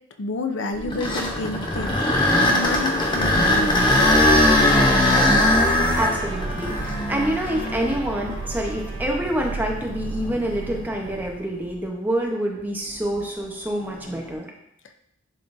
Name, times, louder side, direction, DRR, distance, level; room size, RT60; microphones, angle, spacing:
voice 1, 0.2-3.8 14.9-15.0, left 3 dB, 60° left, 6 dB, 0.5 m, -30 dB
sound 1, 0.7-8.8 9.4-9.5 10.2-10.4 13.9-14.2, left 1 dB, 20° left, 0.8 m, -20 dB
Trumpet, 1.5-9.3, equal, 30° right, 2.3 m, -40 dB
sound 2, 3.0-12.1, right 3 dB, 75° right, 0.5 m, -33 dB
voice 2, 5.0-5.4 5.9-14.5, right 1 dB, 10° right, -1 dB, 0.9 m, -27 dB
10.5 x 3.8 x 2.6 m, 0.77 s
head